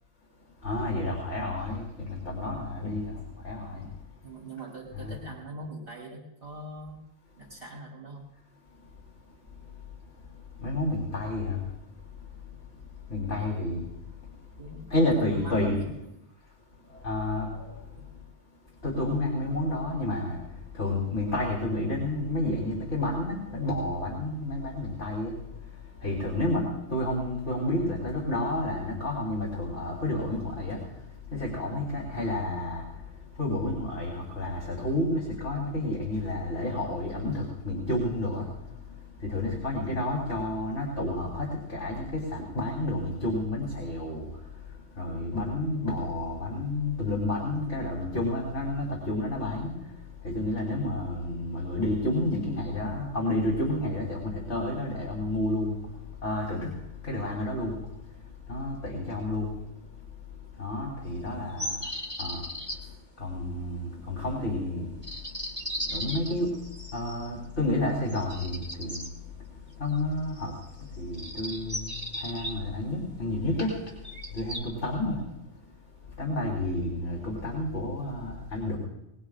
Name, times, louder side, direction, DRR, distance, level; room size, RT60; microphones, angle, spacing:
voice 1, 0.6-3.9 5.0-5.1 8.8-9.0 9.5-14.6 14.9-15.7 16.4-18.2 18.8-75.7 76.0-78.8, left 1 dB, 60° left, -4 dB, 4.1 m, -31 dB
voice 2, 4.2-7.0 7.4-8.2 14.6-14.9 15.2-16.3 18.0-18.1 61.4-61.7, right 1 dB, 60° right, -5 dB, 3.6 m, -42 dB
sound 1, 61.6-62.8 65.0-67.3 68.1-69.1 70.3-70.7 71.1-72.5 73.9-74.6, equal, 10° right, 2.8 m, -36 dB
23.0 x 21.5 x 2.5 m, 0.88 s
omnidirectional pair, 1.3 m